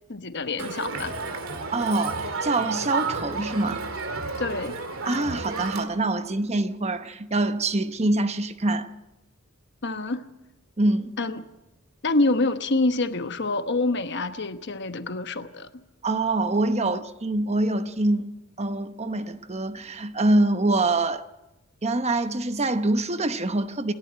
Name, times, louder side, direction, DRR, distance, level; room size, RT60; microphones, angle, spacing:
voice 1, 0.1-1.1 4.4-4.7 9.8-10.3 11.2-11.4 12.0-15.7, left 2 dB, 55° left, 1.1 m, -26 dB
Crowd, 0.6-5.8, right 4 dB, 80° right, 2.3 m, -31 dB
voice 2, 1.7-3.8 5.0-8.9 10.8-11.1 16.0-18.3 18.6-21.3 21.8-23.9, right 2 dB, 30° right, 0.9 m, -25 dB
28.0 x 11.5 x 8.8 m
head